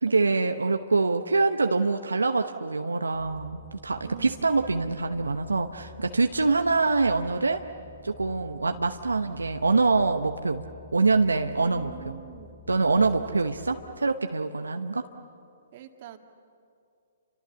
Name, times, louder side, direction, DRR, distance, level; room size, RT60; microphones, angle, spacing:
voice 1, 0.0-7.6 8.0-10.6 10.9-12.2 12.7-15.0, right 3 dB, 90° right, 6 dB, 1.0 m, -25 dB
sound 1, 3.1-13.9, left 3 dB, 20° right, 2.5 m, -49 dB
voice 2, 4.0-4.5 11.6-12.6 13.0-13.6 15.7-16.2, right 9 dB, 45° right, 5 dB, 2.0 m, -44 dB
29.5 x 26.0 x 7.1 m, 2.4 s
hypercardioid pair, 130°, 0 cm